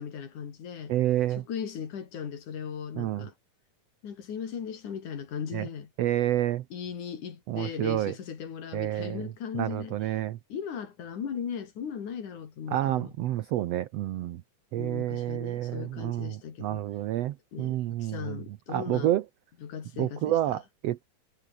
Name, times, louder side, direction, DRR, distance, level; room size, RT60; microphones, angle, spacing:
voice 1, 0.0-0.9 1.5-3.3 4.0-5.9 6.7-10.0 10.5-13.1 14.7-16.9 17.5-19.1 19.6-20.6, left 7 dB, 60° left, 4.2 m, -38 dB
voice 2, 0.9-1.4 3.0-3.3 5.5-5.7 6.0-6.6 7.5-8.1 8.7-9.3 9.5-10.4 12.7-14.4 14.7-18.4 18.7-19.2 20.0-21.0, right 13 dB, 80° right, 1.4 m, -29 dB
omnidirectional pair, 3.9 m